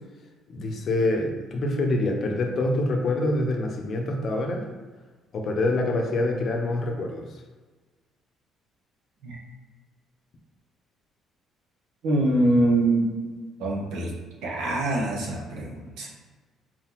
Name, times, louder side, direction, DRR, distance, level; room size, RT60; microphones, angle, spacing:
voice 1, 0.5-4.7 5.3-7.3, left 2 dB, 45° left, 2 dB, 0.8 m, -26 dB
voice 2, 12.0-13.1 13.6-14.1 14.4-16.1, right 1 dB, 85° right, -2 dB, 1.2 m, -24 dB
4.4 x 3.9 x 3.0 m, 1.4 s
cardioid pair, 125°, 0 cm